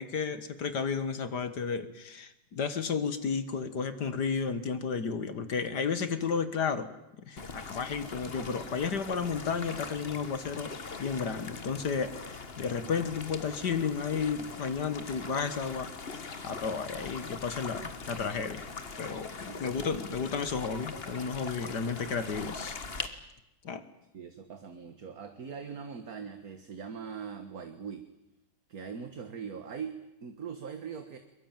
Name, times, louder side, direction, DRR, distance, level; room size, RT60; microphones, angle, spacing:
voice 1, 0.0-6.9 7.3-10.7 11.0-15.9 16.4-18.7 19.0-23.2 23.6-23.8, left 5 dB, 55° left, 12 dB, 1.9 m, -32 dB
sound 1, 7.4-23.1, left 4 dB, 30° left, 1.6 m, -42 dB
voice 2, 19.5-20.3 24.1-28.1 28.7-31.2, right 6 dB, 50° right, 8 dB, 1.8 m, -41 dB
22.5 x 22.5 x 9.0 m, 0.89 s
omnidirectional pair, 2.2 m